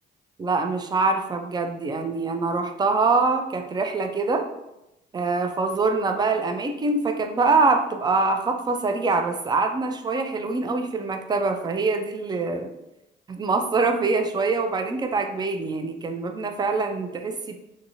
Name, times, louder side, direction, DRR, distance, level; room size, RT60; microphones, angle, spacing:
voice 1, 0.4-4.5 5.1-12.7 13.3-17.5, right 3 dB, 20° right, 5 dB, 0.4 m, -24 dB
2.7 x 2.6 x 2.8 m, 0.89 s
cardioid pair, 90°, 20 cm